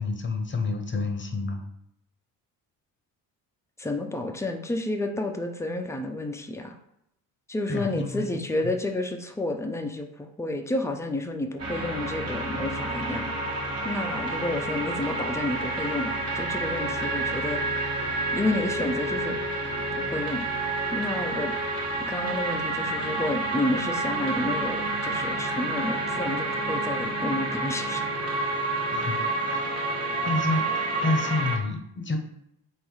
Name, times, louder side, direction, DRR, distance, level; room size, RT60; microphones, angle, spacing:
voice 1, 0.0-1.6 7.7-8.7 28.9-29.9 30.3-32.2, left 3 dB, 25° left, 5 dB, 0.9 m, -29 dB
voice 2, 3.8-6.7 7.5-17.6 18.3-19.4 20.0-20.5 20.9-21.5 22.1-28.1, left 2 dB, 5° left, 4 dB, 0.6 m, -30 dB
sound 1, 11.6-31.6, right 2 dB, 35° right, 1.4 m, -29 dB
3.8 x 2.6 x 4.7 m, 0.79 s
supercardioid pair, 60°, 46 cm